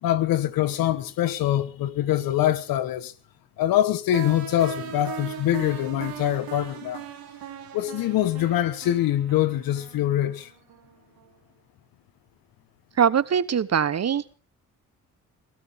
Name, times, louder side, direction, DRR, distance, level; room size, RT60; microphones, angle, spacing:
voice 1, 0.0-3.1 3.6-7.0 7.7-10.5, left 12 dB, 85° left, 1.3 m, -24 dB
sound 1, 4.1-10.9, right 7 dB, 85° right, 2.9 m, -39 dB
voice 2, 13.0-14.3, right 8 dB, 50° right, 1.1 m, -22 dB
23.5 x 15.5 x 3.6 m
supercardioid pair, 55°, 34 cm